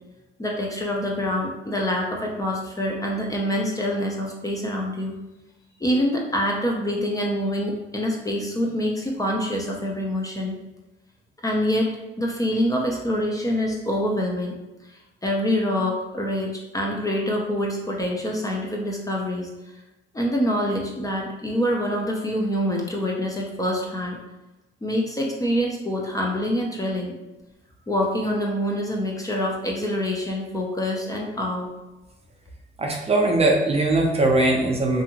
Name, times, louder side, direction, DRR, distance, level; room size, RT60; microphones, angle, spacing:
voice 1, 0.4-5.1 5.8-10.6 11.4-11.9 12.2-14.6 15.2-19.5 20.1-24.2 24.8-27.1 27.9-31.7, equal, 15° left, -1 dB, 0.5 m, -25 dB
voice 2, 32.8-35.0, right 2 dB, 30° right, 1 dB, 0.6 m, -20 dB
2.7 x 2.5 x 2.8 m, 1.0 s
cardioid pair, 90°, 20 cm